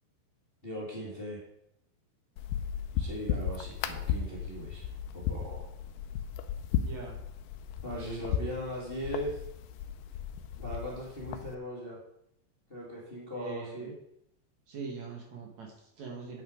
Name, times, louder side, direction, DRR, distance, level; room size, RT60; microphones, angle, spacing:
voice 1, 0.6-1.4 3.0-5.7 7.8-9.4 10.6-12.0 12.7-14.0, equal, 20° left, -4 dB, 1.9 m, -39 dB
sound 1, 2.4-11.5, left 8 dB, 80° left, 2.0 m, -35 dB
voice 2, 6.8-7.2 8.0-8.3 13.3-13.9 14.7-16.4, right 4 dB, 60° right, 0 dB, 2.5 m, -42 dB
8.6 x 8.6 x 5.1 m, 0.76 s
omnidirectional pair, 4.1 m